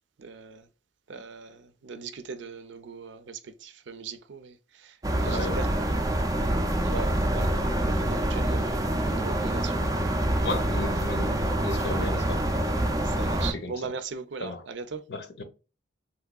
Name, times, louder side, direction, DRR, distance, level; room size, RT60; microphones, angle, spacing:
voice 1, 0.2-0.7 1.1-6.1 6.8-7.5 7.8-9.8 13.0-15.0, right 5 dB, 70° right, 0.5 m, -39 dB
sound 1, 5.0-13.5, right 1 dB, 20° right, 0.4 m, -26 dB
voice 2, 5.2-5.6 10.4-12.5 13.5-13.7 14.4-14.6 15.1-15.4, left 3 dB, 60° left, 0.7 m, -35 dB
3.5 x 3.1 x 2.3 m
head